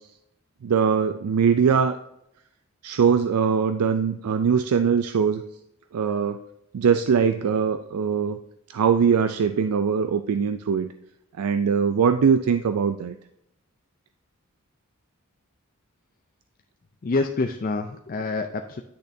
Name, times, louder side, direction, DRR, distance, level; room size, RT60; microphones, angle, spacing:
voice 1, 0.6-2.0 2.8-5.4 5.9-6.4 6.7-8.4 8.7-10.9 11.4-13.1, right 6 dB, 85° right, 10 dB, 0.4 m, -21 dB
voice 2, 17.0-18.8, left 3 dB, 40° left, 5 dB, 0.4 m, -27 dB
10.0 x 6.5 x 2.7 m, 0.82 s
head